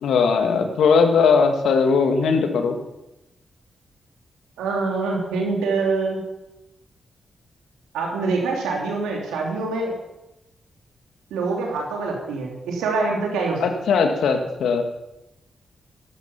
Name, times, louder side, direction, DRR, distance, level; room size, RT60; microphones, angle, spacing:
voice 1, 0.0-2.8 13.6-14.8, left 5 dB, 80° left, 5 dB, 1.8 m, -19 dB
voice 2, 4.6-6.2 7.9-9.9 11.3-13.6, right 3 dB, 90° right, 0 dB, 3.1 m, -25 dB
13.5 x 12.0 x 5.7 m, 0.92 s
supercardioid pair, 40°, 0 cm